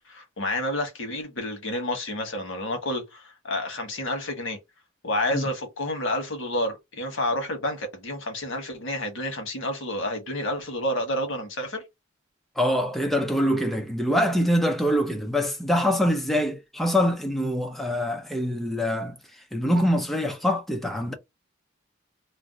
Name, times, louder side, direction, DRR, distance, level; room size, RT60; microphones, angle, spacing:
voice 1, 0.1-4.6 5.0-11.8, left 1 dB, 80° left, 1.0 m, -29 dB
voice 2, 12.6-19.2 19.5-21.1, equal, ahead, 0.4 m, -24 dB
2.5 x 2.1 x 3.7 m
head